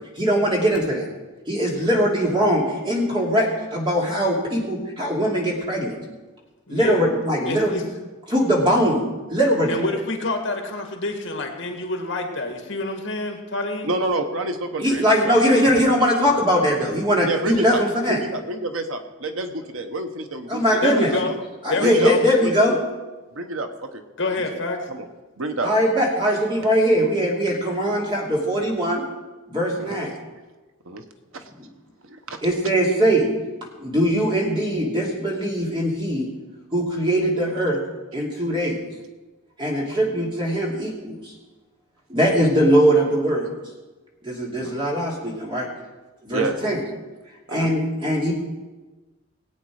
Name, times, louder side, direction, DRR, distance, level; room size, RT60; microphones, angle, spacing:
voice 1, 0.2-1.1 1.5-6.0 6.7-7.8 8.3-9.0 9.3-9.7 14.8-18.2 20.5-21.1 21.6-22.8 25.6-29.0 29.5-30.1 32.4-33.3 33.8-36.3 36.7-37.8 38.1-38.8 39.6-41.3 42.1-43.5 44.2-45.7 46.2-46.8 47.5-48.3, equal, 25° right, -2 dB, 2.8 m, -21 dB
voice 2, 6.7-7.0 7.4-7.8 9.7-13.9 20.8-21.4 21.7-22.2 24.2-24.9, left 2 dB, 65° left, 4 dB, 2.0 m, -27 dB
voice 3, 13.8-15.6 17.2-17.8 18.1-20.8 21.1-21.3 21.8-22.1 22.4-22.5 23.3-24.4 24.9-25.0 25.4-25.7 29.8-30.0 30.9-31.0 31.3-31.4 32.0-32.4 38.6-38.7 44.6-44.8 46.3-46.8 47.5-47.7, right 2 dB, 80° right, 7 dB, 1.1 m, -28 dB
19.0 x 8.6 x 4.9 m, 1.2 s
head